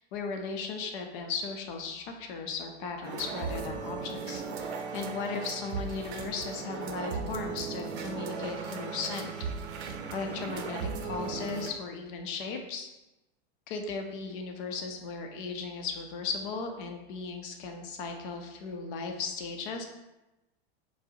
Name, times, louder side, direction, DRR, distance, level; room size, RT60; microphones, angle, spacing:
voice 1, 0.0-9.3 9.7-9.8 10.1-12.9 13.7-19.8, left 4 dB, 55° left, 4 dB, 0.6 m, -36 dB
sound 1, 3.0-11.7, right 5 dB, 75° right, 0.5 m, -37 dB
4.6 x 2.1 x 2.7 m, 1.0 s
supercardioid pair, 135°, 32 cm